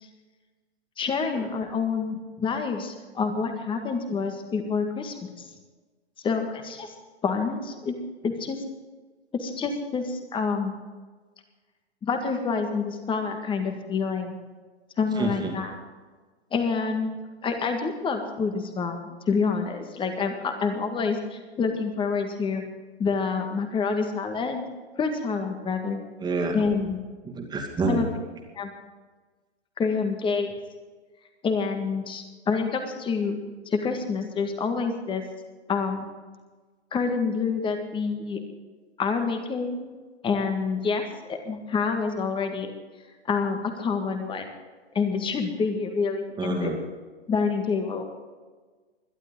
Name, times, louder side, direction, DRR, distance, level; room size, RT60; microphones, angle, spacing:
voice 1, 1.0-5.5 6.2-6.9 7.2-8.0 8.2-8.6 9.3-10.8 12.0-14.4 15.0-15.7 16.5-17.2 17.4-22.6 23.0-24.6 25.0-26.0 26.5-27.0 27.9-28.1 28.6-28.7 29.8-30.5 31.4-33.4 33.7-35.2 35.7-36.1 36.9-38.4 39.0-40.0 40.2-42.7 43.3-44.5 45.0-46.7 47.3-48.0, left 5 dB, 15° left, 6 dB, 1.8 m, -27 dB
voice 2, 15.2-15.5 26.2-26.7 27.2-28.1 46.4-46.8, right 3 dB, 10° right, 1 dB, 2.4 m, -28 dB
22.0 x 12.0 x 3.9 m, 1.3 s
figure-of-eight pair, 110°, 34 cm